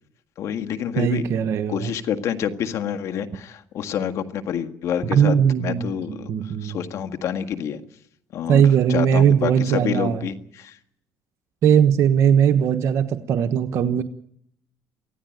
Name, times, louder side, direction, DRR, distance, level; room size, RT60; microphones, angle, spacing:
voice 1, 0.4-1.4 1.7-7.8 8.3-10.8, left 8 dB, 65° left, 8 dB, 1.7 m, -28 dB
voice 2, 1.0-1.9 5.1-6.8 8.5-10.2 11.6-14.0, right 8 dB, 60° right, 6 dB, 1.3 m, -19 dB
24.5 x 15.5 x 9.3 m, 0.69 s
cardioid pair, 100°, 6 cm